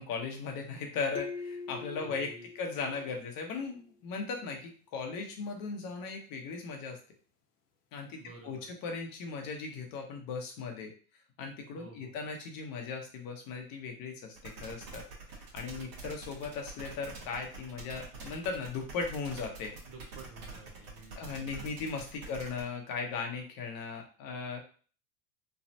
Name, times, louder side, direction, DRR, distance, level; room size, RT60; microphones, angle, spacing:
voice 1, 0.0-7.0 7.9-8.2 8.4-10.9 11.4-19.7 21.2-24.6, left 4 dB, 45° left, 3 dB, 0.9 m, -38 dB
sound 1, 1.1-3.7, left 5 dB, 80° left, 0.9 m, -43 dB
voice 2, 2.0-2.5 8.2-8.7 11.8-12.2 19.9-22.0, right 3 dB, 30° right, 0 dB, 0.6 m, -52 dB
sound 2, 14.4-22.6, right 4 dB, 45° right, 1.2 m, -46 dB
3.2 x 2.3 x 2.7 m, 0.40 s
supercardioid pair, 115°, 49 cm